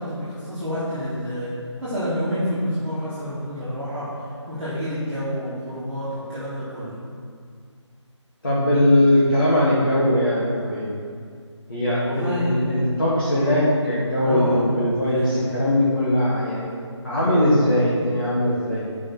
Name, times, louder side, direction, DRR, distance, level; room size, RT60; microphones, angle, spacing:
voice 1, 0.0-1.5 1.8-6.9 12.0-12.7 14.2-14.6 15.1-15.3, equal, 5° left, -26 dB, 0.8 m, -28 dB
voice 2, 8.4-10.9 11.7-16.7 17.0-19.0, left 1 dB, 45° left, -10 dB, 1.9 m, -20 dB
8.9 x 6.4 x 4.6 m, 2.1 s
figure-of-eight pair, 180°, 16 cm